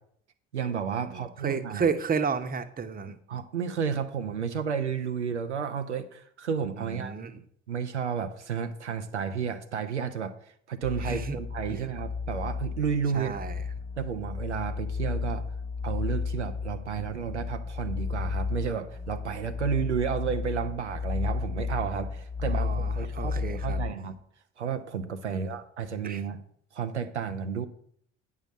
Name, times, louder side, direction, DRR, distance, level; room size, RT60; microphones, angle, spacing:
voice 1, 0.5-1.9 3.3-7.2 7.7-10.4 10.7-13.3 14.0-15.4 15.8-24.2 24.6-26.4 26.7-27.7, right 7 dB, 85° right, 8 dB, 0.6 m, -32 dB
voice 2, 1.0-3.2 6.8-7.4 11.0-11.4 11.7-11.8 13.1-13.6 22.5-23.8 25.3-25.6 26.0-26.2, right 5 dB, 25° right, 11 dB, 0.9 m, -32 dB
sound 1, 10.8-23.9, left 5 dB, 20° left, 1.3 m, -33 dB
8.9 x 5.6 x 6.3 m, 0.64 s
figure-of-eight pair, 50°, 34 cm